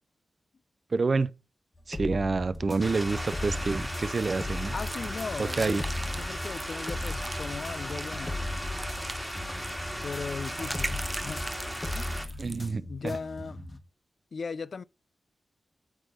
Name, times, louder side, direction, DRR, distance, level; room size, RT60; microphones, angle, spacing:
voice 1, 0.9-1.3 1.9-4.7 5.4-5.8 12.4-13.2, right 4 dB, 50° right, 0.5 m, -28 dB
sound 1, 1.8-13.8, left 1 dB, 25° left, 1.4 m, -38 dB
sound 2, 2.8-12.3, equal, ahead, 2.0 m, -36 dB
sound 3, 4.0-12.7, right 2 dB, 20° right, 0.9 m, -41 dB
voice 2, 4.7-5.8 6.2-8.4 10.0-11.5 11.9-13.6 14.3-14.8, left 5 dB, 65° left, 0.4 m, -38 dB
8.9 x 3.7 x 6.3 m
wide cardioid pair, 80°, 0 cm